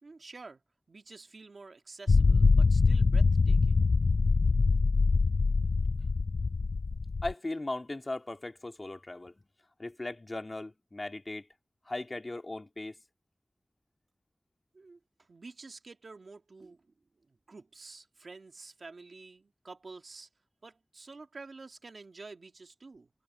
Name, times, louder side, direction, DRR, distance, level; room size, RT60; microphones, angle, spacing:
voice 1, 0.0-0.6 0.9-3.7 14.7-16.9 17.3-20.3 20.6-23.1, right 3 dB, 80° right, 2.1 m, -49 dB
sound 1, 2.1-7.3, left 4 dB, 90° left, 0.4 m, -24 dB
voice 2, 7.2-9.4 9.8-11.5 11.9-12.9, left 2 dB, 40° left, 2.6 m, -38 dB
wide cardioid pair, 65°, 0 cm